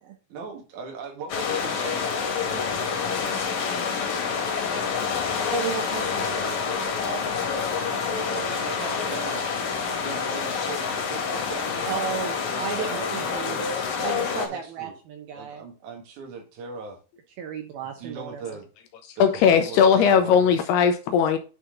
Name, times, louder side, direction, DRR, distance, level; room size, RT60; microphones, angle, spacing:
voice 1, 0.3-2.1 2.5-3.0 8.4-9.5 10.0-13.7 13.9-15.0 15.3-17.0 18.0-18.7 19.2-20.6, right 5 dB, 55° right, 2.5 m, -39 dB
sound 1, 1.3-14.5, left 6 dB, 55° left, 2.3 m, -27 dB
voice 2, 5.5-7.2 7.9-8.4 11.9-13.6 14.0-15.6 17.4-18.6, right 8 dB, 80° right, 2.2 m, -34 dB
voice 3, 19.2-21.4, left 7 dB, 80° left, 2.3 m, -18 dB
10.5 x 4.4 x 3.8 m
omnidirectional pair, 5.6 m